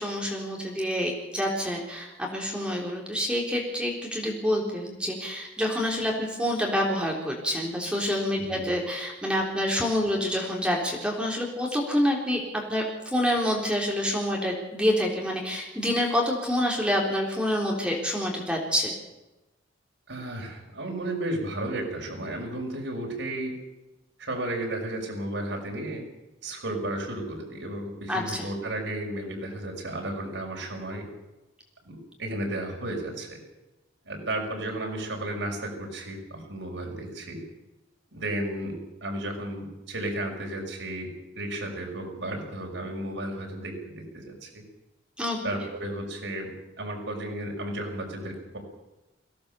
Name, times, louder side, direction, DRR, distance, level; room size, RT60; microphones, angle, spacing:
voice 1, 0.0-18.9 28.1-28.4 45.2-45.4, equal, 5° right, -1 dB, 3.8 m, -27 dB
voice 2, 20.1-23.5 24.2-26.0 26.4-31.1 31.8-33.4 34.0-37.4 38.1-44.6 45.4-48.6, right 1 dB, 75° right, 0 dB, 6.1 m, -33 dB
23.0 x 17.0 x 6.9 m, 1.0 s
head